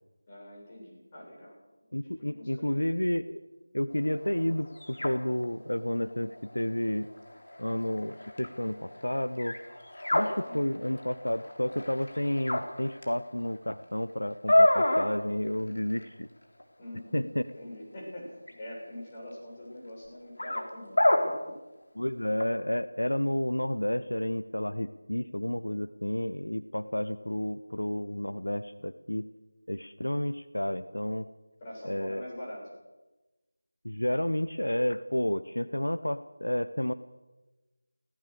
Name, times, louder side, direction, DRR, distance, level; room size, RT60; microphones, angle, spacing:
voice 1, 0.3-2.9 10.4-10.7 16.8-17.3 17.5-21.6 31.6-32.7, left 1 dB, 25° left, -3 dB, 7.8 m, -44 dB
voice 2, 1.9-3.4 3.7-7.1 7.6-9.6 10.1-16.3 17.1-17.4 22.0-29.3 29.7-31.3 31.8-32.2 33.8-36.9, left 1 dB, 80° left, 12 dB, 0.9 m, -31 dB
sound 1, 3.9-13.8 14.2-15.1 15.5-16.1 16.6-16.7 17.5-17.6 18.5-18.6 20.4-20.6 21.0-21.2 22.4-22.5, left 1 dB, 65° left, 3.8 m, -29 dB
22.5 x 17.5 x 6.7 m, 1.1 s
figure-of-eight pair, 165°, 0 cm